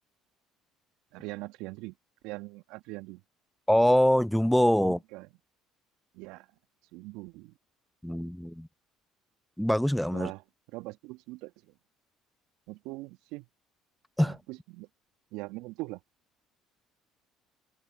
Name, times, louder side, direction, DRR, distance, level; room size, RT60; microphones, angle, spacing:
voice 1, 1.1-1.9 2.2-3.2 4.8-5.3 6.1-6.5 6.9-7.6 10.1-10.4 10.7-11.5 12.7-13.5 14.2-14.9 15.3-16.0, right 22 dB, 70° right, 1.7 m, -41 dB
voice 2, 3.7-5.0 8.0-8.7 9.6-10.3 14.2-14.4, equal, 5° left, 0.7 m, -24 dB
hypercardioid pair, 60°, 0 cm